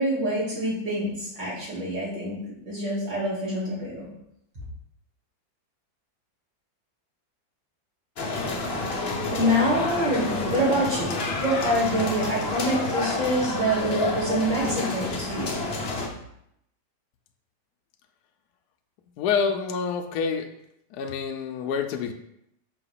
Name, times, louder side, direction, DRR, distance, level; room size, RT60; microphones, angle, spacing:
voice 1, 0.0-2.4 2.7-4.1 9.1-11.1 11.4-15.7, equal, 70° right, -7 dB, 3.0 m, -26 dB
sound 1, 8.2-16.1, left 2 dB, 50° left, 0.7 m, -29 dB
voice 2, 19.2-20.5 20.9-22.1, left 6 dB, 70° left, 5 dB, 1.0 m, -27 dB
5.6 x 3.0 x 5.6 m, 0.78 s
omnidirectional pair, 2.0 m